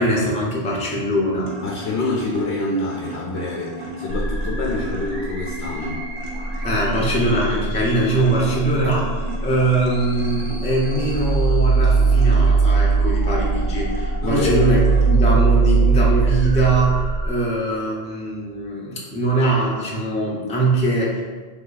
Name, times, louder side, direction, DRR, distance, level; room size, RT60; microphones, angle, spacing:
voice 1, 0.0-1.5 6.6-9.1 9.4-14.8 15.1-21.2, right 2 dB, 10° left, -4 dB, 0.5 m, -21 dB
sound 1, 1.2-15.1, right 1 dB, 35° right, 0.6 m, -37 dB
voice 2, 1.6-6.0 14.2-14.6, left 2 dB, 80° left, -3 dB, 0.9 m, -26 dB
sound 2, 4.1-17.3, right 4 dB, 80° right, 1.7 m, -21 dB
3.5 x 3.2 x 4.0 m, 1.4 s
omnidirectional pair, 1.1 m